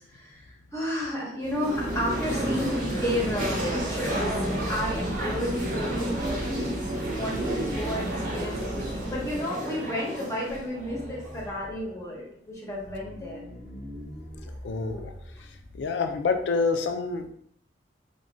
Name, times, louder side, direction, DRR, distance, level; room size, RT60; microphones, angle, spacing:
voice 1, 0.0-4.3 4.7-13.4, left 1 dB, 15° left, -3 dB, 0.7 m, -32 dB
sound 1, 1.4-11.4, right 1 dB, 45° right, 0.8 m, -31 dB
sound 2, 1.7-9.4, right 1 dB, 75° right, 0.5 m, -37 dB
sound 3, 8.3-9.8 10.1-10.2 10.5-12.0 12.7-15.8, equal, 15° right, 0.6 m, -44 dB
voice 2, 14.6-15.1 15.7-17.3, left 4 dB, 65° left, 6 dB, 0.3 m, -27 dB
3.4 x 2.2 x 2.5 m, 0.68 s
head